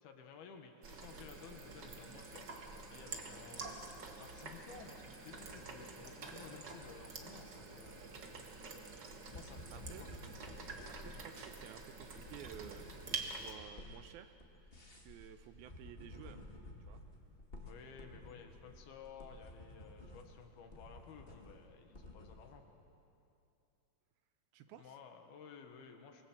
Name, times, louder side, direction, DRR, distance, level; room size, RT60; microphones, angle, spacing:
voice 1, 0.0-2.6 2.9-3.6 4.2-8.0 9.3-10.1 17.6-22.7 24.7-26.2, left 6 dB, 75° left, 5 dB, 3.3 m, -55 dB
sound 1, 0.8-13.5, right 4 dB, 55° right, 1.2 m, -48 dB
sound 2, 9.3-22.6, left 1 dB, 20° left, 1.5 m, -53 dB
voice 2, 9.7-10.1 10.9-14.3 14.9-16.4 16.8-17.0 24.5-25.0, right 11 dB, 80° right, 9 dB, 2.4 m, -54 dB
26.0 x 19.5 x 7.4 m, 2.7 s
omnidirectional pair, 4.6 m